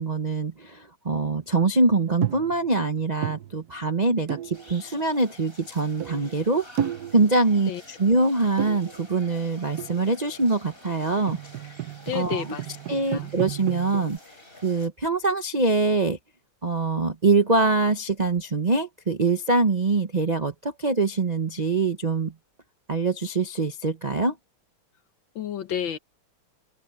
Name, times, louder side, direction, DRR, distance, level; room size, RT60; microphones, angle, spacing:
voice 1, 0.0-6.6 7.1-11.4 12.1-12.4 12.9-14.2 14.6-16.2 16.6-22.3 22.9-24.3, right 3 dB, 40° right, 0.6 m, -24 dB
sound 1, 2.1-2.7 3.0-3.9 4.3-5.0 5.6-5.7 5.9-6.5 6.8-7.5 8.5-9.4 9.8-10.3 11.0-14.2, right 10 dB, 65° right, 1.0 m, -33 dB
sound 2, 4.5-14.9, left 1 dB, 25° left, 7.2 m, -49 dB
voice 2, 12.1-13.3 25.4-26.0, left 9 dB, 65° left, 1.7 m, -31 dB
open air
omnidirectional pair, 2.4 m